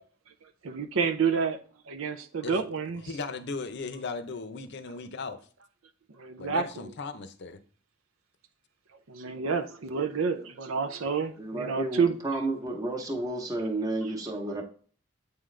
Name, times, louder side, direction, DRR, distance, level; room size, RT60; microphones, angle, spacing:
voice 1, 0.6-1.6 1.9-3.0 6.2-6.9 9.1-12.2, right 5 dB, 90° right, 0.6 m, -29 dB
voice 2, 3.1-5.4 6.4-7.6, left 4 dB, 60° left, 0.6 m, -37 dB
voice 3, 11.4-14.6, right 2 dB, 20° right, 0.9 m, -31 dB
8.2 x 3.8 x 3.2 m
head